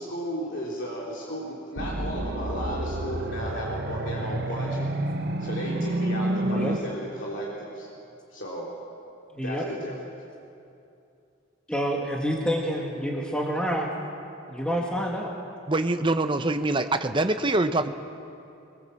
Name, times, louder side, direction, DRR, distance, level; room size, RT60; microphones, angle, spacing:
voice 1, 0.0-4.9 5.4-7.9 8.3-8.7 9.4-10.0, equal, 65° left, -5 dB, 3.4 m, -34 dB
sound 1, 1.8-6.8, right 1 dB, 50° right, 1.1 m, -29 dB
voice 2, 6.4-6.7 9.3-9.6 11.7-13.9 14.5-15.3, equal, 5° left, -2 dB, 1.9 m, -28 dB
voice 3, 15.7-17.9, right 2 dB, 25° right, 8 dB, 0.9 m, -24 dB
22.5 x 21.5 x 7.6 m, 2.7 s
head